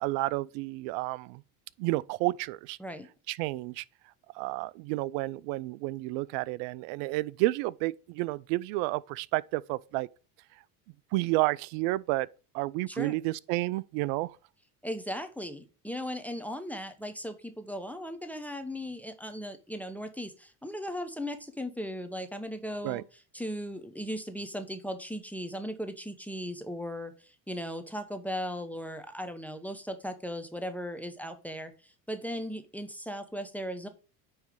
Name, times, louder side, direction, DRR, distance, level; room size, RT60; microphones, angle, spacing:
voice 1, 0.0-1.4 1.8-2.8 3.3-3.8 4.3-10.1 11.1-12.3 12.5-14.4 22.8-23.0, right 19 dB, 65° right, 0.5 m, -31 dB
voice 2, 14.8-23.0 23.3-33.9, equal, 5° left, 0.8 m, -37 dB
9.0 x 3.2 x 5.2 m
hypercardioid pair, 80°, 45 cm